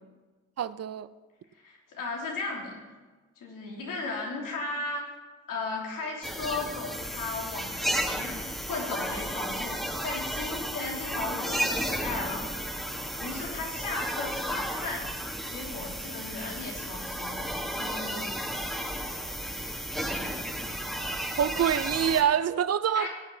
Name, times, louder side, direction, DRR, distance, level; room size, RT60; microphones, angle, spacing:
voice 1, 0.6-1.1 21.3-23.1, right 9 dB, 50° right, 0.6 m, -26 dB
voice 2, 1.5-2.8 3.4-5.0 5.5-8.3 8.7-12.8 13.2-15.0 15.5-18.4 22.9-23.1, left 3 dB, 80° left, 3.1 m, -36 dB
sound 1, 6.2-22.2, equal, ahead, 2.4 m, -33 dB
17.5 x 5.9 x 5.7 m
supercardioid pair, 50°, 32 cm